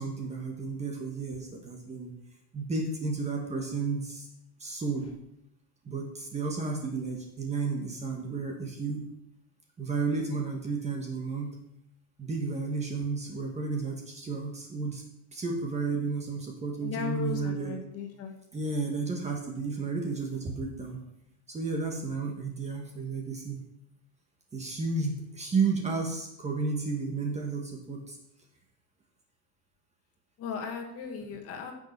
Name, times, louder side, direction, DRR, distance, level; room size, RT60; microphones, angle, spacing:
voice 1, 0.0-2.1 2.5-4.3 4.6-5.1 5.8-9.0 9.8-11.6 12.2-15.0 15.3-17.8 18.5-21.0 21.5-23.6 24.5-28.2, right 4 dB, 15° right, 1 dB, 1.6 m, -32 dB
voice 2, 16.8-18.3 30.4-31.7, left 6 dB, 30° left, 4 dB, 2.0 m, -36 dB
15.5 x 7.0 x 6.0 m, 0.80 s
supercardioid pair, 160°, 48 cm